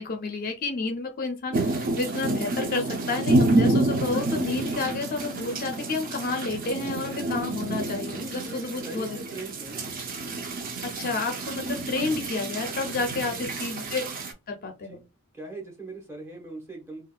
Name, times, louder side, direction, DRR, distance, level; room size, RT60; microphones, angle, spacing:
voice 1, 0.0-9.2 10.8-14.0 14.5-15.0, left 3 dB, 40° left, 0.4 m, -30 dB
sound 1, 1.5-14.3, right 2 dB, 40° right, 0.5 m, -28 dB
voice 2, 8.1-9.9 13.2-13.5 14.7-15.0 15.3-17.0, right 2 dB, 10° right, 0.8 m, -40 dB
3.5 x 2.3 x 2.2 m
head